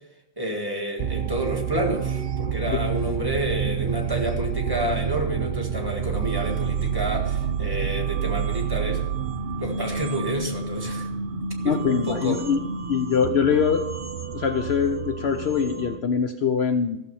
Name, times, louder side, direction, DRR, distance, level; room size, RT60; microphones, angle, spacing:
voice 1, 0.4-9.0 9.6-11.1 11.6-11.8 12.1-12.4, right 1 dB, 15° right, 0 dB, 1.7 m, -29 dB
sound 1, 1.0-16.0, right 7 dB, 50° right, 0.7 m, -29 dB
voice 2, 11.6-12.6 12.9-13.9 14.3-17.0, left 6 dB, 60° left, 7 dB, 0.9 m, -23 dB
14.5 x 7.1 x 5.6 m, 0.85 s
omnidirectional pair, 1.3 m